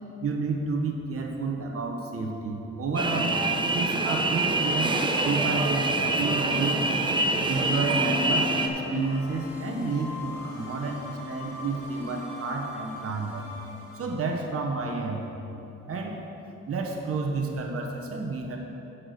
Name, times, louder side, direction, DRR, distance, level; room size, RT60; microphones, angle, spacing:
voice 1, 0.2-3.4 3.7-4.9 5.2-6.8 7.5-13.5 13.9-15.3 15.9-16.2 16.7-18.6, right 3 dB, 50° right, 1 dB, 1.3 m, -30 dB
sound 1, 3.0-8.7, right 2 dB, 15° right, 0.7 m, -26 dB
sound 2, 4.7-14.3, left 3 dB, 50° left, 2.0 m, -38 dB
7.9 x 6.1 x 6.4 m, 3.0 s
cardioid pair, 90°, 30 cm